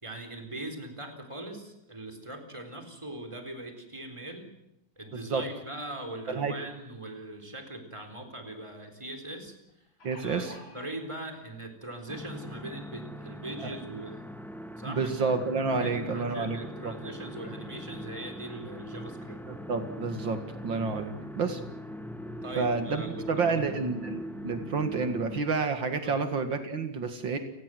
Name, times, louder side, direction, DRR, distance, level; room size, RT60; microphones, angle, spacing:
voice 1, 0.0-4.5 5.0-9.9 10.2-10.5 10.7-14.3 14.8-15.1 15.8-19.4 22.4-23.6 26.0-26.2, right 1 dB, 15° right, 4 dB, 4.0 m, -41 dB
sound 1, 9.7-10.9 11.8-11.9 12.3-12.4, left 1 dB, 85° left, 5.9 m, -49 dB
voice 2, 10.0-10.5 13.6-13.7 14.9-16.9 19.5-21.6 22.6-23.0 23.3-27.4, right 4 dB, 75° right, 7 dB, 2.7 m, -30 dB
sound 2, 12.1-25.4, equal, ahead, 1.7 m, -41 dB
30.0 x 19.0 x 7.8 m, 0.86 s
omnidirectional pair, 2.1 m